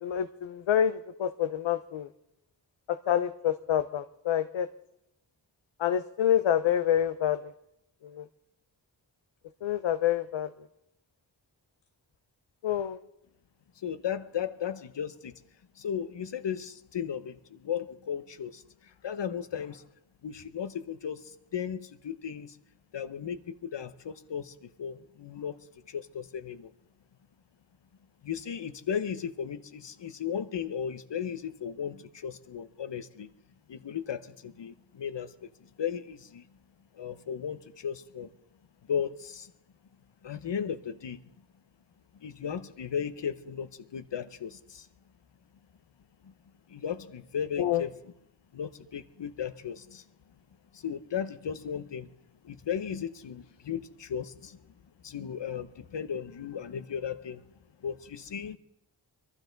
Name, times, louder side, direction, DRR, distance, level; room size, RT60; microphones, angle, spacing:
voice 1, 0.0-2.1 2.9-4.7 5.8-7.5 8.1-8.2 9.6-10.5 12.6-13.0 47.6-47.8, left 10 dB, 90° left, 0.6 m, -27 dB
voice 2, 13.8-15.3 15.8-19.8 20.2-22.6 22.9-25.6 25.9-26.7 28.2-33.3 33.7-36.5 36.9-38.3 38.9-39.5 40.2-41.2 42.1-44.9 46.2-46.3 46.7-48.1 48.5-50.0 50.7-52.1 52.4-54.6 55.0-57.4 57.8-58.6, left 8 dB, 65° left, 0.9 m, -36 dB
23.5 x 12.5 x 4.0 m
cardioid pair, 60°, 45 cm